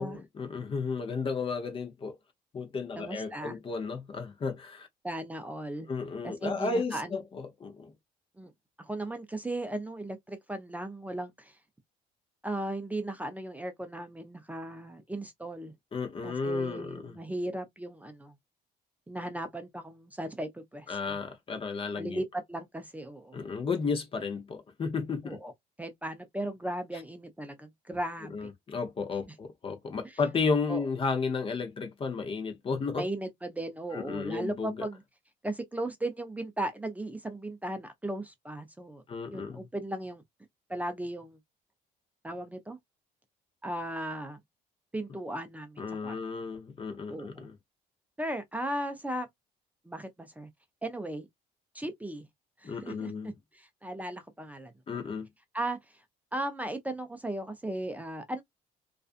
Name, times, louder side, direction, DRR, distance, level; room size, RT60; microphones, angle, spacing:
voice 1, 0.0-2.2 2.5-4.9 5.9-7.9 15.9-17.2 20.9-22.2 23.3-25.4 28.3-33.1 33.9-34.9 39.1-39.7 45.8-47.5 52.6-53.3 54.9-55.3, left 4 dB, 30° left, 0.7 m, -33 dB
voice 2, 3.0-3.6 5.0-5.9 6.2-7.2 8.4-8.5 8.8-11.6 12.4-15.7 16.2-18.3 19.1-21.2 22.0-23.4 25.2-25.5 25.8-28.5 30.0-30.2 30.7-30.8 33.0-35.0 35.4-39.0 39.3-40.2 40.7-41.4 42.2-42.8 43.6-44.4 44.9-46.2 47.1-47.5 48.2-49.3 49.9-50.5 50.8-51.3 51.7-52.2 52.6-54.7 55.0-55.1 55.5-55.8 56.3-58.4, right 1 dB, 10° right, 0.5 m, -37 dB
2.5 x 2.3 x 2.4 m
cardioid pair, 110°, 17 cm